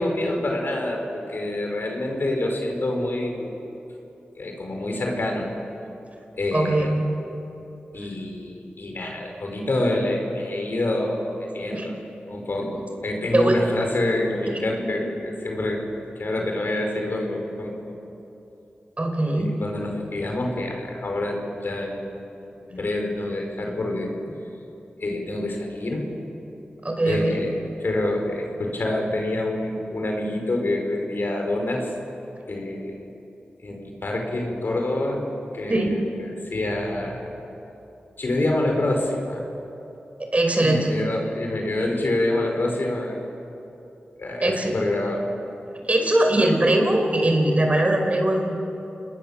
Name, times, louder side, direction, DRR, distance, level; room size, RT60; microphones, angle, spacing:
voice 1, 0.0-3.6 4.4-5.5 6.3-6.9 7.9-12.0 12.3-15.9 16.2-18.0 19.4-22.0 22.7-24.1 25.0-26.1 27.0-27.6 27.8-31.9 32.5-32.9 33.6-35.2 35.5-37.3 38.2-39.4 40.6-43.2 44.2-45.2, left 1 dB, 65° left, 2 dB, 5.2 m, -27 dB
voice 2, 6.5-7.0 11.7-11.9 13.3-13.6 14.8-14.9 19.0-19.5 26.8-27.4 35.7-35.9 40.3-40.9 44.4-44.7 45.9-48.6, right 1 dB, 35° right, 3 dB, 4.8 m, -21 dB
28.5 x 20.0 x 7.3 m, 2.9 s
cardioid pair, 55°, 4 cm